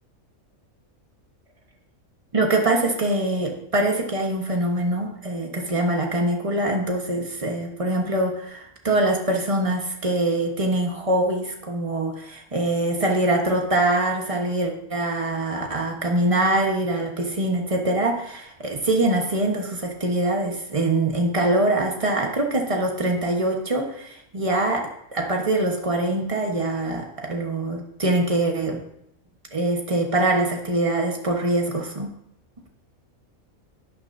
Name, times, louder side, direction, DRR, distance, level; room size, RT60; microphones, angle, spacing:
voice 1, 2.3-28.8 29.5-32.1, right 2 dB, 25° right, 2 dB, 1.2 m, -24 dB
11.0 x 9.8 x 2.7 m, 0.77 s
omnidirectional pair, 1.5 m